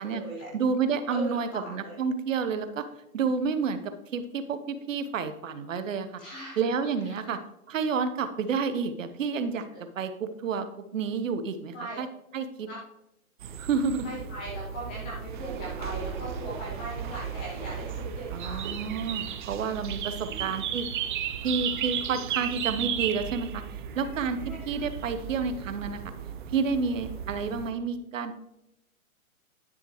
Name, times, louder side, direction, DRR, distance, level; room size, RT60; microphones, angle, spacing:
voice 1, 0.0-0.5 1.1-2.0 6.2-6.6 7.0-7.4 11.7-12.0 12.7-12.8 14.0-18.6 20.3-20.5 24.3-24.6, right 1 dB, 10° left, -4 dB, 0.4 m, -39 dB
voice 2, 0.5-2.8 3.1-6.2 6.6-7.4 7.7-9.7 10.0-10.7 10.9-12.1 12.3-12.7 13.6-14.1 18.3-20.9 21.4-23.6 24.0-26.0 26.5-28.3, right 5 dB, 60° right, 10 dB, 1.1 m, -30 dB
sound 1, 13.4-27.7, right 8 dB, 35° right, 0.6 m, -35 dB
10.5 x 6.6 x 3.1 m, 0.85 s
hypercardioid pair, 135°, 43 cm